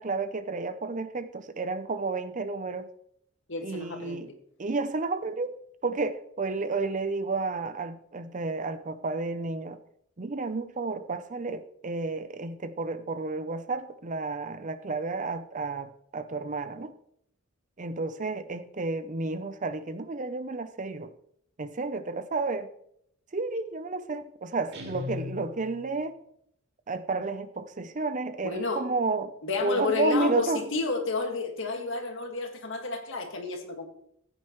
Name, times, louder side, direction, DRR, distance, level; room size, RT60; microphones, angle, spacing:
voice 1, 0.0-2.9 3.6-4.3 4.6-5.5 5.8-9.8 10.2-16.9 17.8-21.1 21.6-22.7 23.3-26.2 26.9-29.3 29.6-30.7, right 3 dB, 35° right, 0.6 m, -31 dB
voice 2, 3.5-4.3 28.4-28.9 29.4-33.9, left 3 dB, 60° left, 1.9 m, -31 dB
Guitar, 24.7-26.0, left 4 dB, 55° right, 2.2 m, -38 dB
15.0 x 8.9 x 3.1 m
head